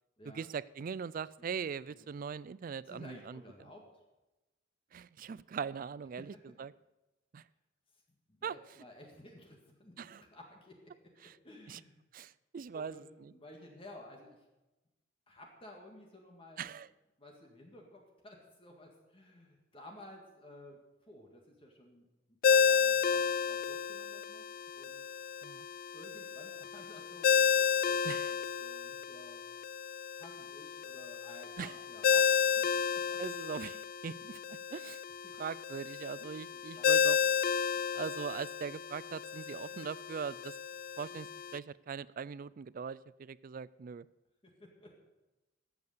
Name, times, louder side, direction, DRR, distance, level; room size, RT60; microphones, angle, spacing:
voice 1, 0.2-3.4 4.9-6.7 7.3-7.4 8.4-8.6 10.0-10.2 11.2-11.3 11.7-11.8 12.1-13.3 16.6-16.9 25.4-25.7 28.0-28.3 31.6-31.8 33.2-35.0 35.4-37.2 37.9-40.6 41.0-44.1, right 6 dB, 45° right, 20 dB, 0.3 m, -41 dB
voice 2, 1.9-2.2 2.9-4.0 6.1-6.3 8.3-12.0 12.7-14.4 15.3-16.7 17.2-22.1 22.5-24.4 24.7-25.1 25.9-29.4 30.2-33.2 35.2-35.4 36.5-37.4 44.4-45.0, left 1 dB, 30° left, 1 dB, 1.9 m, -54 dB
Ringtone, 22.4-41.6, left 6 dB, 50° left, 0.4 m, -32 dB
13.5 x 8.2 x 6.7 m, 1.0 s
head